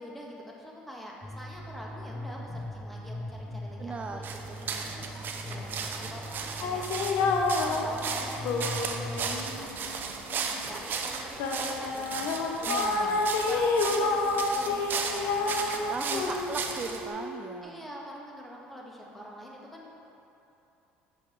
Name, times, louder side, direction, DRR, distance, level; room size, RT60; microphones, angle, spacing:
voice 1, 0.0-6.3 6.6-12.4 12.9-16.7 17.6-19.9, equal, 5° left, -3 dB, 1.6 m, -45 dB
sound 1, 1.2-9.6, left 1 dB, 20° left, 0.6 m, -40 dB
voice 2, 3.8-4.2 12.6-13.2 15.9-17.8, right 4 dB, 30° right, 5 dB, 0.3 m, -37 dB
sound 2, 4.2-17.1, right 5 dB, 50° right, 0.7 m, -36 dB
sound 3, 6.6-10.6 11.1-17.6, left 3 dB, 75° left, 0.8 m, -29 dB
7.8 x 5.7 x 4.6 m, 2.9 s
supercardioid pair, 80°, 4 cm